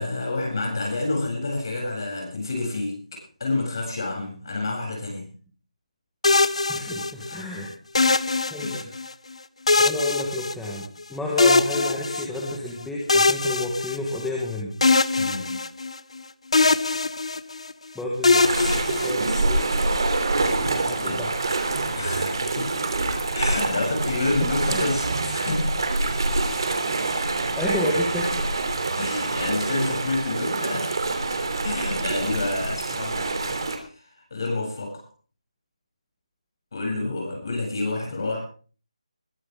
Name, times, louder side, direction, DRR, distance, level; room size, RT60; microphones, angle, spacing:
voice 1, 0.0-5.3 7.3-7.6 8.6-8.9 15.2-15.7 21.0-21.2 21.9-22.8 23.3-25.8 29.0-30.9 31.6-33.6 33.8-35.1 36.7-38.4, left 2 dB, 35° left, -1 dB, 7.9 m, -29 dB
sound 1, 6.2-7.4 7.9-9.1 9.7-11.0 11.4-12.6 13.1-14.4 14.8-16.2 16.5-17.7 18.2-19.6, left 3 dB, 55° left, 0.8 m, -22 dB
voice 2, 6.7-7.7 8.5-8.8 9.8-14.8 17.9-19.6 20.7-21.4 24.4-24.8 27.5-28.5, left 1 dB, ahead, -4 dB, 1.1 m, -30 dB
sound 2, 18.4-33.8, right 2 dB, 40° right, 3.1 m, -26 dB
21.5 x 11.0 x 3.6 m, 0.38 s
figure-of-eight pair, 180°, 4 cm